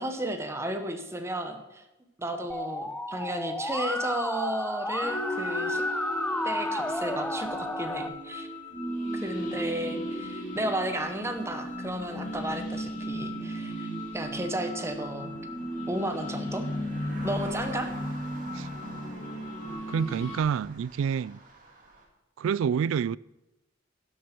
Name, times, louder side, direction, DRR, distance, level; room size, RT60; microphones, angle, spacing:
voice 1, 0.0-1.8 2.2-5.8 6.4-8.5 9.1-15.3 15.9-16.7 17.2-17.9, right 1 dB, 15° right, 1.1 m, -33 dB
Musical instrument, 2.5-8.1, left 1 dB, 5° left, 0.5 m, -32 dB
sound 1, 5.0-20.4, equal, 40° left, 2.4 m, -35 dB
sound 2, 8.7-22.1, right 2 dB, 45° right, 2.2 m, -50 dB
voice 2, 19.9-21.4 22.4-23.2, right 7 dB, 85° right, 0.3 m, -28 dB
11.5 x 7.8 x 6.0 m
head